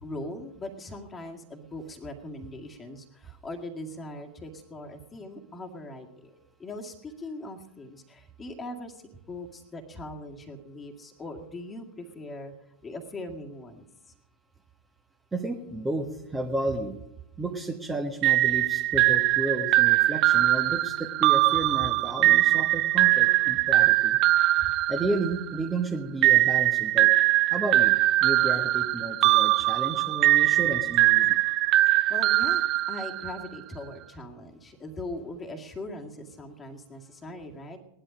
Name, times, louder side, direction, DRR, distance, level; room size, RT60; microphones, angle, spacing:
voice 1, 0.0-9.0 9.3-12.5 12.8-13.9 32.1-37.8, left 1 dB, 15° left, 2 dB, 2.0 m, -40 dB
voice 2, 15.3-17.0 17.4-24.2 24.9-27.1 27.5-28.0 28.2-31.4, right 2 dB, 10° right, 4 dB, 1.4 m, -32 dB
sound 1, 18.2-25.7 26.2-33.5, right 16 dB, 35° right, 0.5 m, -22 dB
18.0 x 11.5 x 5.2 m, 0.84 s
figure-of-eight pair, 90°, 0 cm